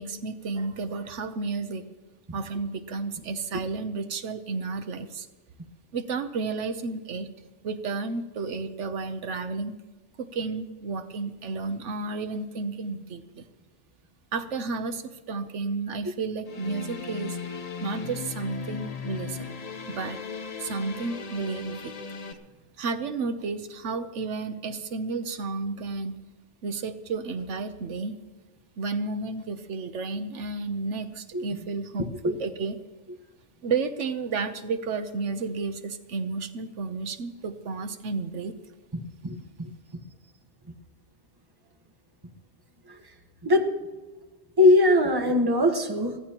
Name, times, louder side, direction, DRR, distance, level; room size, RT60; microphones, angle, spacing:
voice 1, 0.0-1.8 2.3-5.3 5.9-7.3 7.6-9.7 10.2-13.5 14.3-17.4 17.8-19.5 19.9-20.2 20.6-21.9 22.8-26.2 26.6-28.1 28.8-32.8 33.6-38.6, right 4 dB, 85° right, 9 dB, 1.2 m, -32 dB
sound 1, 16.5-22.3, left 5 dB, 35° left, 0.9 m, -37 dB
voice 2, 38.9-39.7 42.9-43.0 43.4-43.7 44.6-46.2, left 2 dB, 20° right, 4 dB, 1.3 m, -21 dB
23.0 x 15.5 x 3.0 m, 1.2 s
omnidirectional pair, 1.2 m